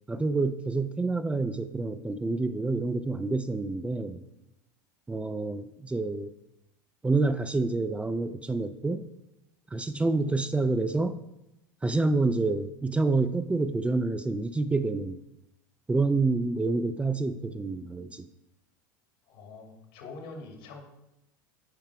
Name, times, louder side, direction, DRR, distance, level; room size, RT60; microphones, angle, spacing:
voice 1, 0.1-4.2 5.1-6.3 7.0-9.0 9.7-11.2 11.8-15.2 15.9-18.3, right 3 dB, 10° right, 11 dB, 0.4 m, -28 dB
voice 2, 19.2-20.8, left 3 dB, 70° left, 2 dB, 2.2 m, -44 dB
9.4 x 4.5 x 4.7 m, 0.89 s
hypercardioid pair, 100°, 11 cm